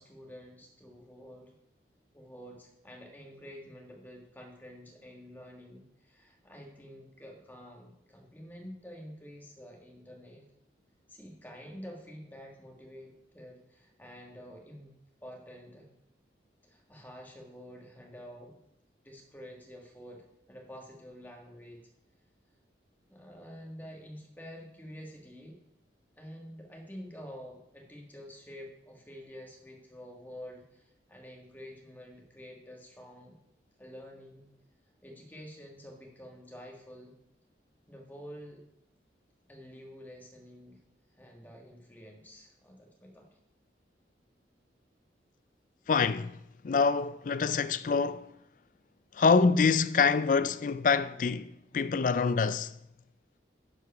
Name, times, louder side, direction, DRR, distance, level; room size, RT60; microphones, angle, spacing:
voice 1, 0.0-1.5 2.1-10.4 11.1-14.9 15.2-15.9 16.6-18.6 19.0-21.8 23.1-25.6 26.1-33.3 33.8-34.5 35.0-37.1 37.9-38.6 39.5-40.8 41.2-43.3, equal, 10° left, 1.6 m, -48 dB
voice 2, 45.9-46.4 46.6-48.3 49.1-52.7, left 5 dB, 45° left, 0.3 m, -26 dB
11.0 x 4.8 x 5.6 m
head